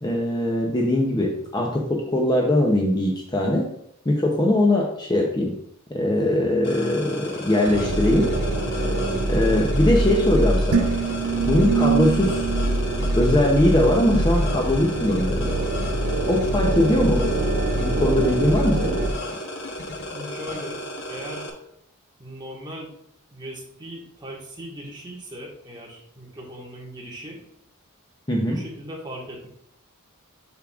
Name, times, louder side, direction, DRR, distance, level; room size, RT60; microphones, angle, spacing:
voice 1, 0.0-3.7 4.1-5.6 5.9-8.3 9.3-10.9 11.5-12.5 13.2-15.5 16.3-17.3 17.8-19.0 28.3-28.6, left 1 dB, 20° left, 0 dB, 0.7 m, -21 dB
sound 1, 6.6-21.5, left 1 dB, 50° left, 1.0 m, -34 dB
sound 2, 7.7-19.1, right 1 dB, 50° right, 1.0 m, -24 dB
sound 3, 10.7-14.1, right 7 dB, 90° right, 0.4 m, -26 dB
voice 2, 20.1-21.5 22.2-22.9 23.3-27.4 28.3-29.5, equal, 20° right, -3 dB, 1.6 m, -38 dB
7.0 x 6.4 x 2.4 m, 0.72 s
head